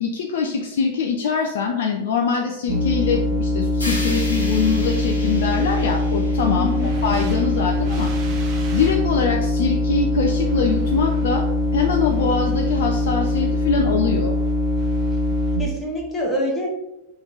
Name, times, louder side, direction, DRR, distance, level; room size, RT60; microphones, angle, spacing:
voice 1, 0.0-8.1 8.7-11.4 11.7-14.4, left 5 dB, 60° left, 2 dB, 0.4 m, -23 dB
sound 1, 2.7-15.6, left 2 dB, 40° right, 0.9 m, -22 dB
sound 2, 3.8-7.9, left 1 dB, 80° left, 1.0 m, -35 dB
voice 2, 6.6-6.9 15.6-16.7, left 1 dB, 15° left, -2 dB, 1.3 m, -25 dB
3.4 x 3.0 x 3.8 m, 0.93 s
figure-of-eight pair, 90°, 0 cm